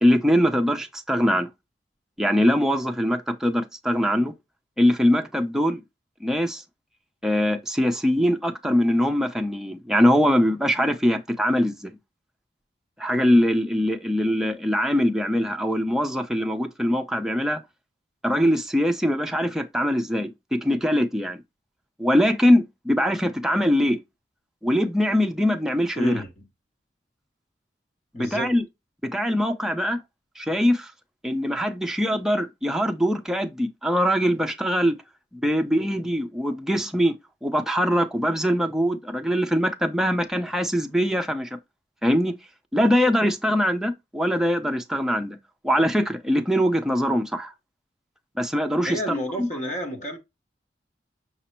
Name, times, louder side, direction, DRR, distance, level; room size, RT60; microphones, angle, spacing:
voice 1, 0.0-1.5 2.2-4.3 4.8-5.8 6.2-6.6 7.2-11.9 13.0-17.6 18.2-21.4 22.0-24.0 24.6-26.2 28.1-28.6 29.0-30.0 30.4-30.9 31.2-35.0 35.3-37.2 37.4-41.5 42.0-42.3 42.7-45.4 45.6-47.5 48.4-49.0 49.4-49.5, equal, 5° right, 0.5 m, -22 dB
voice 2, 25.9-26.5 28.1-28.6 48.9-50.2, equal, 40° left, 0.9 m, -30 dB
5.9 x 2.0 x 4.3 m
head